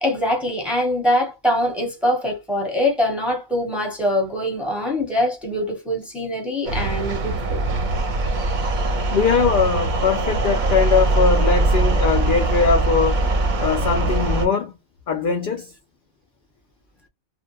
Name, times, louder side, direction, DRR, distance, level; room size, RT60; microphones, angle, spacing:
voice 1, 0.0-7.6, left 1 dB, ahead, 0.8 m, -23 dB
sound 1, 6.6-14.4, right 2 dB, 50° right, 0.6 m, -21 dB
voice 2, 9.1-13.3 13.5-14.7 15.1-15.7, left 5 dB, 65° left, 0.5 m, -21 dB
2.3 x 2.1 x 2.9 m
omnidirectional pair, 1.3 m